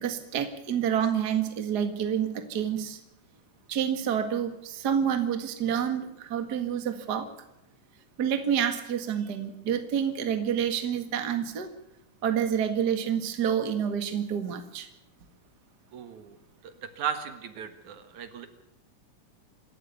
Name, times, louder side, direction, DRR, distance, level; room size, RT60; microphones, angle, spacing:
voice 1, 0.0-3.0 3.7-7.3 8.2-11.7 12.2-14.9, right 8 dB, 35° right, 7 dB, 1.9 m, -28 dB
voice 2, 15.9-16.4 16.6-18.5, right 8 dB, 65° right, 8 dB, 2.9 m, -36 dB
27.0 x 13.5 x 7.0 m, 0.88 s
omnidirectional pair, 3.7 m